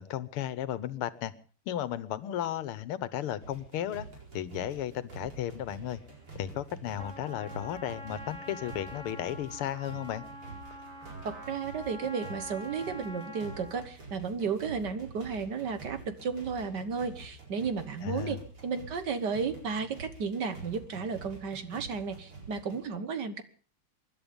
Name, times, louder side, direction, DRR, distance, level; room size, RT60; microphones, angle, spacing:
voice 1, 0.0-1.3 1.7-4.1 4.3-6.0 6.3-10.2 18.0-18.4, left 11 dB, 90° left, 16 dB, 1.8 m, -34 dB
sound 1, 3.4-22.8, right 4 dB, 85° right, 5.5 m, -48 dB
Trumpet, 7.0-13.9, equal, 30° right, 2.8 m, -45 dB
voice 2, 11.2-23.4, right 5 dB, 55° right, 10 dB, 1.8 m, -33 dB
24.5 x 11.5 x 5.2 m, 0.43 s
omnidirectional pair, 2.4 m